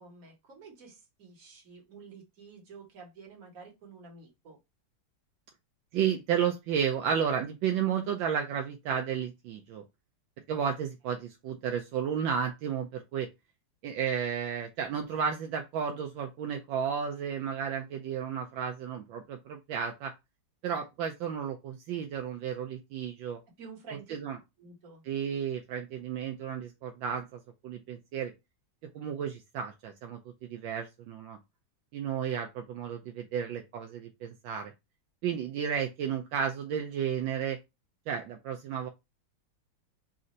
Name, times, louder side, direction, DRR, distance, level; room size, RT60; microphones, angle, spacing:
voice 1, 0.0-4.6 23.6-24.2 24.6-25.0, right 4 dB, 45° right, -1 dB, 1.8 m, -50 dB
voice 2, 5.9-9.8 10.5-13.3 13.8-20.1 20.6-23.4 24.1-24.4 25.1-28.3 28.9-31.4 31.9-34.7 35.2-37.6 38.1-38.9, right 8 dB, 80° right, 4 dB, 1.3 m, -32 dB
4.2 x 2.7 x 3.8 m, 0.23 s
omnidirectional pair, 2.1 m